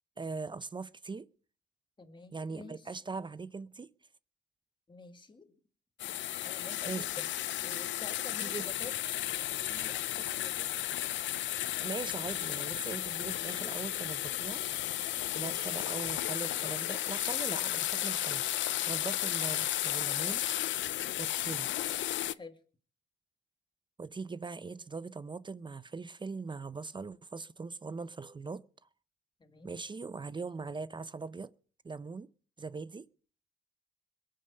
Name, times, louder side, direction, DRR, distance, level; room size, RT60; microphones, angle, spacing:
voice 1, 0.2-1.3 2.3-3.9 6.9-7.3 8.4-8.7 11.8-14.6 15.3-20.5 21.2-21.7 24.0-28.6 29.6-31.5 31.8-32.3 32.6-33.1, right 4 dB, 25° right, 0.6 m, -41 dB
voice 2, 2.0-2.8 4.9-5.5 6.4-7.3 7.6-11.0 21.2-21.6 22.3-22.6 29.4-29.7, left 3 dB, 25° left, 2.2 m, -50 dB
sound 1, 6.0-22.3, left 13 dB, 70° left, 0.6 m, -34 dB
21.5 x 7.6 x 5.3 m
cardioid pair, 90°, 20 cm